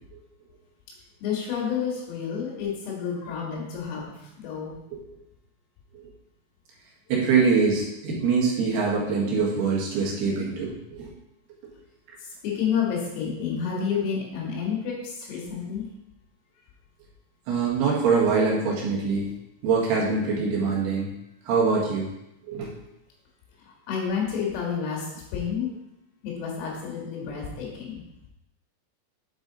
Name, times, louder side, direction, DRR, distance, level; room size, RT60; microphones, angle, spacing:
voice 1, 1.2-4.8 12.2-15.9 23.6-25.7 26.2-27.9, left 7 dB, 85° left, -2 dB, 4.5 m, -30 dB
voice 2, 7.1-11.1 17.5-19.3 19.6-21.1 21.5-22.1 22.5-22.7, right 5 dB, 65° right, -4 dB, 3.1 m, -24 dB
8.8 x 4.7 x 4.0 m, 0.86 s
omnidirectional pair, 5.9 m